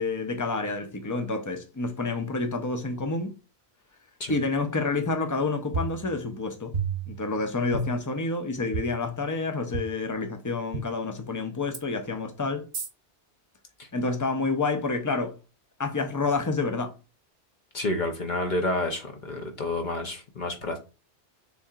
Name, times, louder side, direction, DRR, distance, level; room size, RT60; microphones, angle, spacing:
voice 1, 0.0-3.3 4.3-6.7 7.1-12.7 13.9-15.3 15.8-16.9, left 3 dB, 25° left, 0.5 m, -28 dB
sound 1, 5.7-6.4 6.7-7.3 7.7-8.2 8.7-8.8 9.7-9.8 10.7-10.8 11.7-11.8 12.7-12.9, right 4 dB, 45° right, 0.8 m, -31 dB
voice 2, 17.7-20.8, left 2 dB, 50° left, 0.8 m, -29 dB
7.0 x 2.8 x 2.4 m
omnidirectional pair, 1.2 m